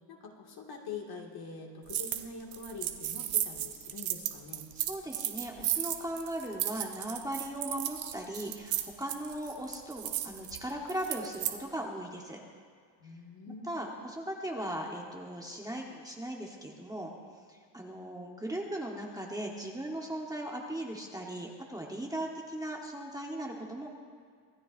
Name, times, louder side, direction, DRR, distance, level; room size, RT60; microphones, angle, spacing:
voice 1, 0.1-4.7 13.0-13.7, left 4 dB, 55° left, 0 dB, 2.0 m, -44 dB
sound 1, 1.9-2.2 2.5-11.6, right 12 dB, 80° right, 1.0 m, -34 dB
voice 2, 4.8-12.4 13.7-17.1 17.5-23.9, right 1 dB, 10° right, -1 dB, 1.0 m, -38 dB
25.5 x 13.5 x 2.5 m, 2.1 s
cardioid pair, 160°, 46 cm